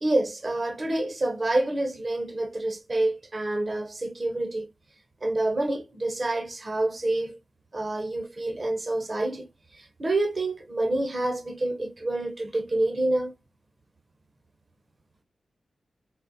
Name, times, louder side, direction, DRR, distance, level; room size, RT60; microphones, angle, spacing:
voice 1, 0.0-4.7 5.2-7.4 7.7-13.3, right 2 dB, 40° right, 0.9 m, -28 dB
4.2 x 2.1 x 4.1 m
cardioid pair, 50°, 0 cm